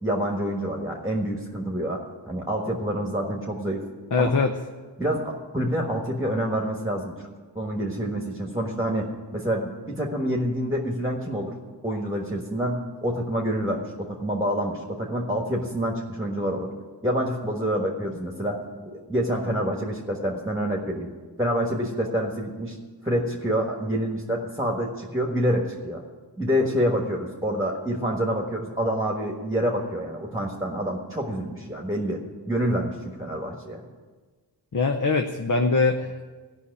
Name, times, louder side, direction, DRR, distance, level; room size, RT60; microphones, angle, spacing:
voice 1, 0.0-3.8 4.2-4.3 5.0-7.3 7.5-11.5 11.8-16.7 17.0-18.6 18.8-21.1 21.4-22.8 23.0-26.0 26.4-33.8, equal, 10° right, 0 dB, 1.5 m, -27 dB
voice 2, 4.1-4.5 34.7-36.2, left 4 dB, 50° left, 4 dB, 0.8 m, -22 dB
15.0 x 5.8 x 9.8 m, 1.4 s
wide cardioid pair, 85°, 41 cm